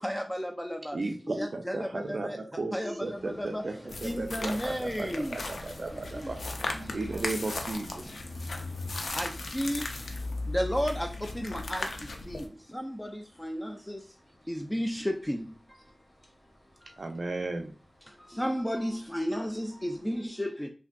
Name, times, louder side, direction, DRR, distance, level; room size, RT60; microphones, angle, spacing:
voice 1, 0.0-1.0 1.4-2.4 2.7-3.1 3.4-3.6 4.0-5.3 9.1-9.3 9.5-9.8 10.5-11.1 11.4-11.8 12.7-13.1 13.4-13.7 14.5-15.4 18.4-20.7, equal, 10° left, 0.3 m, -32 dB
voice 2, 0.9-6.4 6.9-8.1 17.0-17.7, right 3 dB, 65° right, 0.3 m, -35 dB
sound 1, 3.0-20.2, left 1 dB, 55° left, 1.3 m, -55 dB
voice 3, 3.4-4.0 6.1-8.4 8.8-9.9 10.2-10.4 14.4-14.5, right 1 dB, 20° right, 1.4 m, -54 dB
sound 2, 3.9-12.5, left 2 dB, 85° left, 0.5 m, -37 dB
3.5 x 2.6 x 2.2 m
wide cardioid pair, 60°, 0 cm